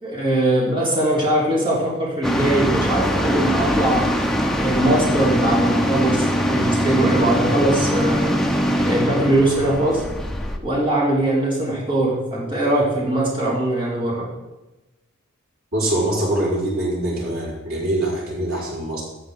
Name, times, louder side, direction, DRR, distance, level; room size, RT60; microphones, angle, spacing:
voice 1, 0.0-4.2 4.5-8.3 8.8-10.0 10.6-14.3, right 1 dB, 25° right, -6 dB, 3.0 m, -21 dB
sound 1, 2.2-10.6, equal, ahead, 0.8 m, -22 dB
voice 2, 15.7-19.0, right 1 dB, 85° right, -6 dB, 4.8 m, -23 dB
14.5 x 8.8 x 3.8 m, 1.0 s
head